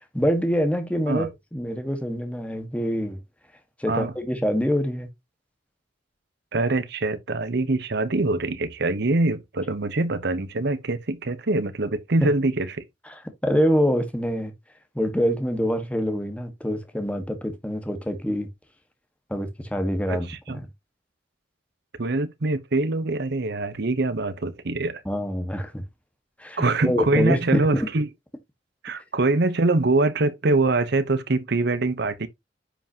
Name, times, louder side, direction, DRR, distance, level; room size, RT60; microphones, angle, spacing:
voice 1, 0.0-3.2 3.8-5.1 12.2-12.3 13.1-14.5 14.9-18.5 19.3-20.6 25.0-25.8 26.4-27.9, equal, 5° left, 1.4 m, -25 dB
voice 2, 6.5-12.8 20.1-20.6 22.0-25.0 26.6-28.1 28.8-32.3, right 2 dB, 60° right, 0.9 m, -24 dB
10.0 x 5.6 x 2.8 m
head